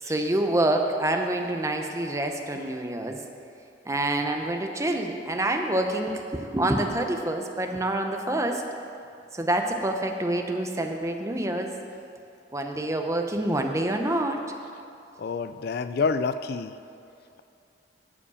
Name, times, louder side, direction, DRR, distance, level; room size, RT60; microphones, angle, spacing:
voice 1, 0.0-3.2 3.9-8.6 9.3-11.7 12.5-14.4, right 1 dB, 15° right, 4 dB, 0.7 m, -27 dB
voice 2, 15.2-16.7, left 4 dB, 55° left, 11 dB, 0.3 m, -27 dB
13.5 x 5.0 x 7.0 m, 2.6 s
head